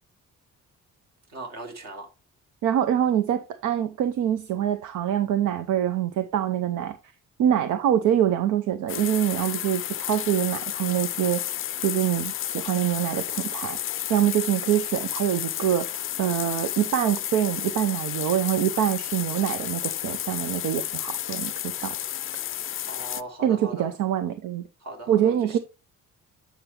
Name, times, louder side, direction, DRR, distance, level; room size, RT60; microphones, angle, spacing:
voice 1, 1.3-2.1 22.9-23.9 24.8-25.6, right 2 dB, 60° right, 3.0 m, -39 dB
voice 2, 2.6-7.0 7.4-11.4 11.8-13.8 14.1-21.5 21.8-22.0 23.4-24.6 25.1-25.6, right 10 dB, 85° right, 0.7 m, -25 dB
sound 1, 8.9-23.2, left 12 dB, 45° left, 0.4 m, -32 dB
8.6 x 6.0 x 3.3 m
cardioid pair, 90°, 30 cm